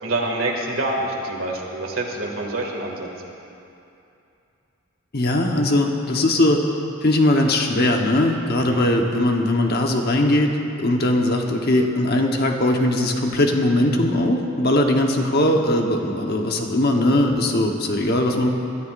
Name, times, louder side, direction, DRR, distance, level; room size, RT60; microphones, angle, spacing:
voice 1, 0.0-3.1 8.6-8.8, right 2 dB, 75° right, -1 dB, 2.2 m, -26 dB
voice 2, 5.1-6.6 7.0-10.5 10.8-18.5, left 1 dB, 50° left, 2 dB, 1.1 m, -20 dB
24.0 x 13.0 x 2.6 m, 2.7 s
head